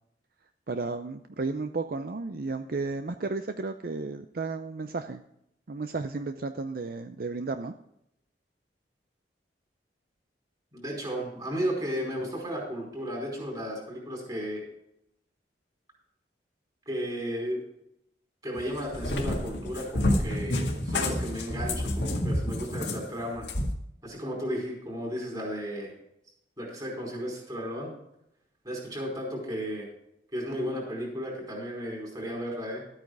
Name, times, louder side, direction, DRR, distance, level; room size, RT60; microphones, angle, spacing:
voice 1, 0.7-5.2 5.7-7.7, right 3 dB, 55° right, 9 dB, 0.5 m, -33 dB
voice 2, 10.7-14.6 16.9-17.6 18.4-23.5 24.0-25.9 26.6-27.9 28.6-29.9 30.3-32.8, equal, 25° right, -3 dB, 4.6 m, -34 dB
Cat, 18.6-23.7, left 1 dB, 85° left, 1.8 m, -29 dB
13.0 x 8.9 x 4.7 m, 0.78 s
head